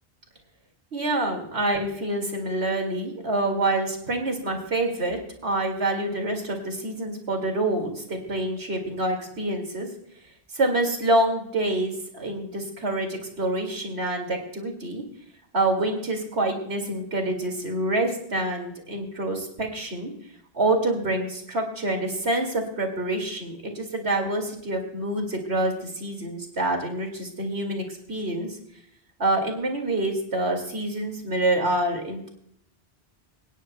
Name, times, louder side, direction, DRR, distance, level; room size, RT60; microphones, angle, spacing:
voice 1, 0.9-9.9 10.5-15.0 15.5-20.1 20.5-28.5 29.2-32.3, right 2 dB, 75° right, 2 dB, 2.7 m, -27 dB
24.5 x 10.0 x 2.2 m, 0.70 s
omnidirectional pair, 1.1 m